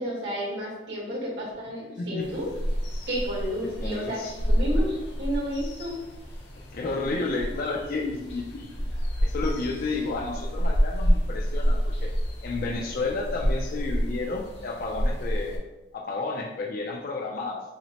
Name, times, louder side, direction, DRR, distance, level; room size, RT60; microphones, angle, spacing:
voice 1, 0.0-2.5 3.1-6.0, equal, 85° right, -4 dB, 1.4 m, -31 dB
sound 1, 2.2-15.6, equal, 85° left, 0.7 m, -28 dB
voice 2, 3.8-4.3 6.7-8.8 9.2-12.1 12.4-15.6 15.9-17.6, left 3 dB, 55° left, -1 dB, 0.4 m, -31 dB
5.7 x 2.1 x 2.9 m, 1.0 s
head